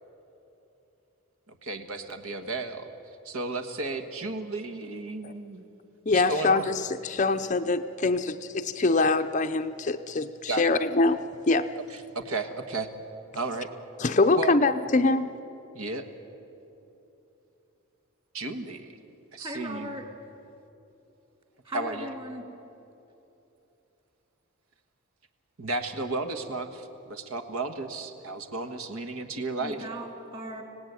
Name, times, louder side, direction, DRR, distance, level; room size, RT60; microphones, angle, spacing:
voice 1, 1.6-2.9 3.2-5.6 6.1-6.6 10.5-10.7 12.1-12.9 13.3-13.7 14.4-14.5 15.7-16.0 18.3-19.0 19.3-19.9 21.7-22.1 25.6-29.8, right 3 dB, 70° right, 7 dB, 1.5 m, -33 dB
voice 2, 6.1-11.7 14.0-15.3, left 3 dB, 35° left, 9 dB, 0.5 m, -24 dB
voice 3, 19.4-20.1 21.6-22.5 29.6-30.6, right 1 dB, 25° right, 3 dB, 2.7 m, -38 dB
25.0 x 17.5 x 9.5 m, 3.0 s
head